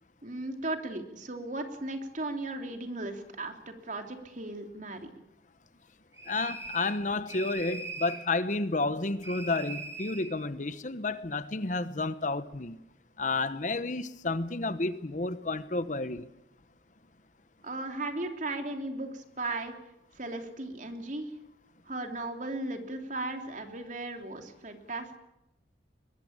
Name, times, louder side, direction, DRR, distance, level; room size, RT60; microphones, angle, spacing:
voice 1, 0.2-5.1 17.6-19.7 20.1-21.3 21.8-25.2, right 2 dB, 45° right, 3.2 m, -36 dB
sound 1, 6.2-7.0 7.3-8.2 9.2-10.3, right 3 dB, 15° right, 5.1 m, -40 dB
voice 2, 6.3-12.8 13.2-16.3, left 3 dB, 45° left, 1.0 m, -31 dB
22.0 x 20.0 x 8.8 m
head